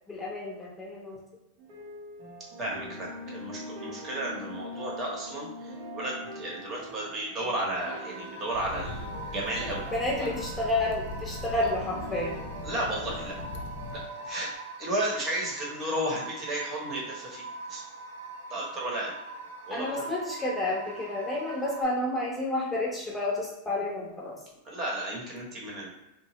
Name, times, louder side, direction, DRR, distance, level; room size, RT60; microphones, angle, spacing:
voice 1, 0.1-1.2 9.9-12.3 19.7-24.4, left 2 dB, 10° left, -4 dB, 0.8 m, -30 dB
sound 1, 1.6-14.6, right 1 dB, 60° right, 0.8 m, -43 dB
voice 2, 2.6-9.8 10.2-10.3 11.5-11.7 12.6-13.4 13.9-14.5 14.8-17.8 18.5-19.1 19.7-20.1 24.6-25.9, right 1 dB, 30° right, -3 dB, 1.0 m, -33 dB
sound 2, 7.8-21.8, right 3 dB, 85° right, 0.4 m, -43 dB
sound 3, 8.5-14.1, left 3 dB, 55° left, 0.4 m, -40 dB
2.9 x 2.1 x 3.0 m, 0.93 s
supercardioid pair, 140°, 0 cm